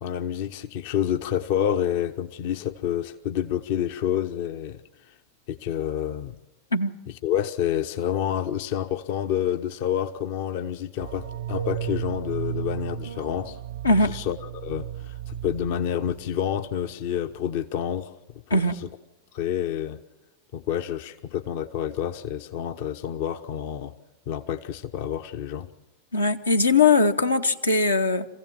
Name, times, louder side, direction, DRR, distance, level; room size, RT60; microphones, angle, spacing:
voice 1, 0.0-4.8 5.1-5.2 5.5-6.4 7.2-13.6 14.0-18.2 18.5-18.9 19.3-20.0 20.5-23.9 24.3-25.7, left 10 dB, 50° left, 0.7 m, -28 dB
sound 1, 11.0-17.0 17.3-17.4, right 10 dB, 65° right, 0.6 m, -35 dB
voice 2, 13.8-14.2 18.5-18.7 26.1-28.3, left 3 dB, 80° left, 0.9 m, -20 dB
25.5 x 16.0 x 7.3 m
figure-of-eight pair, 90°, 0 cm